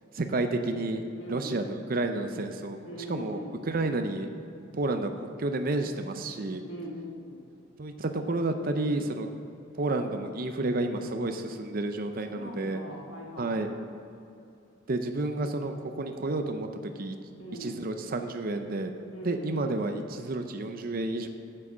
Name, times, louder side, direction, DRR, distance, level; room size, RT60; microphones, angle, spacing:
voice 1, 0.1-1.0 1.3-3.4 3.7-4.3 4.7-5.1 5.4-6.6 7.8-9.3 9.7-12.8 13.4-13.7 14.9-17.2 17.6-18.9 19.2-21.3, right 2 dB, 45° right, 6 dB, 0.6 m, -30 dB
voice 2, 1.2-1.7 2.8-3.7 6.6-7.5 12.3-13.7 17.4-17.8 19.1-19.6, equal, 70° left, 0 dB, 1.6 m, -41 dB
8.1 x 7.6 x 6.0 m, 2.6 s
head